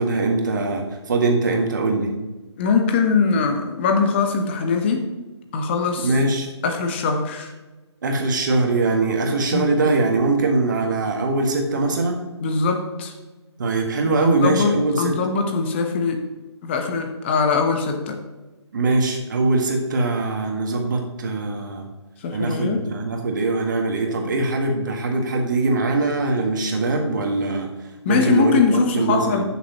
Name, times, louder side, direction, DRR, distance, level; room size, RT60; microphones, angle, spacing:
voice 1, 0.0-2.1 6.0-6.5 8.0-12.2 13.6-15.2 18.7-21.9 22.3-27.7 28.1-29.4, right 3 dB, 40° right, 2 dB, 1.8 m, -22 dB
voice 2, 2.6-5.1 5.5-6.1 6.6-7.5 9.5-9.7 12.4-13.1 14.2-16.2 16.6-18.2 22.2-22.9 28.0-29.4, left 5 dB, 25° left, 5 dB, 1.1 m, -21 dB
14.0 x 6.7 x 3.1 m, 1.2 s
figure-of-eight pair, 145°, 15 cm